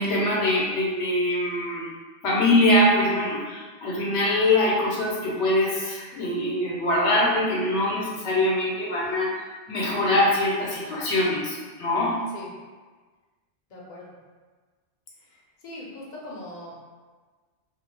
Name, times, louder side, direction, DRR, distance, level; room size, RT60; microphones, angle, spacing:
voice 1, 0.0-1.8 2.2-9.4 9.7-12.2, left 1 dB, 80° left, -4 dB, 0.9 m, -23 dB
voice 2, 13.7-14.1 15.6-16.7, left 1 dB, 50° left, -4 dB, 0.7 m, -40 dB
2.4 x 2.3 x 3.2 m, 1.4 s
omnidirectional pair, 1.2 m